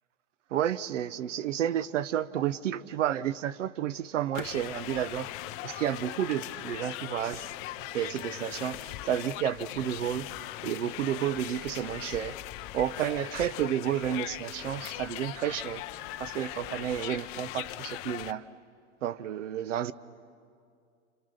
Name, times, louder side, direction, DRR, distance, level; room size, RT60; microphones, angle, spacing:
voice 1, 0.5-5.3 5.6-7.5 7.9-10.3 10.6-12.4 12.7-15.8 16.2-18.4 19.0-19.9, right 10 dB, 70° right, 0.9 m, -31 dB
sound 1, 4.3-18.3, left 15 dB, 35° left, 0.7 m, -40 dB
28.0 x 27.5 x 6.6 m
hypercardioid pair, 115°, 38 cm